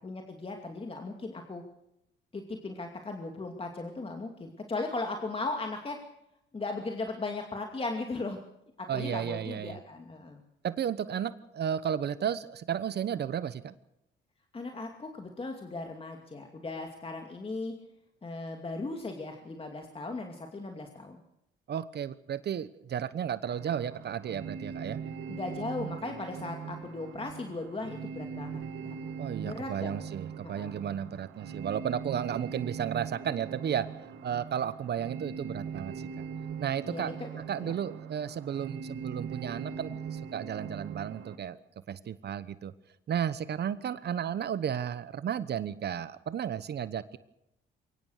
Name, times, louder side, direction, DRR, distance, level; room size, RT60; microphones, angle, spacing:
voice 1, 0.0-1.6 2.3-6.0 6.5-8.4 8.8-10.4 14.5-17.7 18.2-21.2 25.3-28.9 29.4-30.0 30.4-30.7 36.9-37.7, left 3 dB, 30° left, 3 dB, 2.5 m, -37 dB
voice 2, 8.9-9.8 10.6-13.7 21.7-25.0 29.2-33.9 34.2-36.2 36.6-37.1 37.5-41.6 41.9-42.7 43.1-47.2, right 9 dB, 55° right, 14 dB, 1.1 m, -33 dB
sound 1, 23.5-41.4, right 6 dB, 80° right, 2.0 m, -41 dB
23.0 x 19.0 x 6.6 m, 0.82 s
cardioid pair, 90°, 20 cm